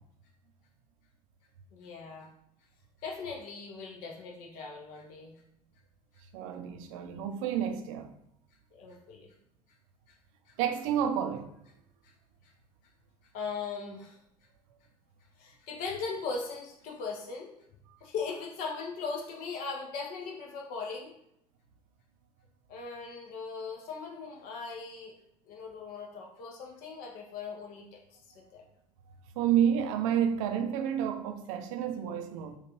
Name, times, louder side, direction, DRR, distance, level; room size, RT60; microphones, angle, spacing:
voice 1, 1.7-2.3 3.0-5.4 8.7-9.3 10.1-10.2 10.5-10.6 12.0-12.1 12.4-12.5 13.3-14.2 15.4-17.5 18.0-21.1 22.7-25.1 25.5-28.2 28.5-28.6, left 4 dB, 50° left, 0.6 m, -39 dB
voice 2, 6.3-8.1 10.6-11.5 29.4-32.6, right 9 dB, 60° right, 0.4 m, -30 dB
3.1 x 2.3 x 2.8 m
figure-of-eight pair, 65°, 19 cm